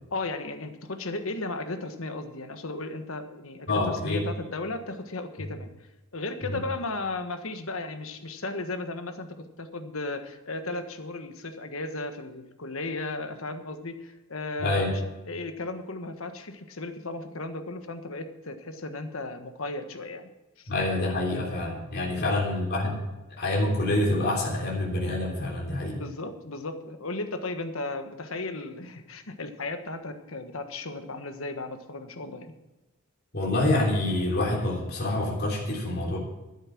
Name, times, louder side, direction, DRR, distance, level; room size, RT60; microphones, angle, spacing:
voice 1, 0.1-20.3 20.6-20.7 22.1-22.2 25.9-32.5, left 2 dB, 75° left, 8 dB, 1.4 m, -35 dB
voice 2, 3.7-4.2 6.4-6.6 14.6-14.9 20.7-22.9 23.4-26.0 33.3-36.2, left 2 dB, 50° left, -3 dB, 3.3 m, -26 dB
12.0 x 10.0 x 6.0 m, 1.0 s
head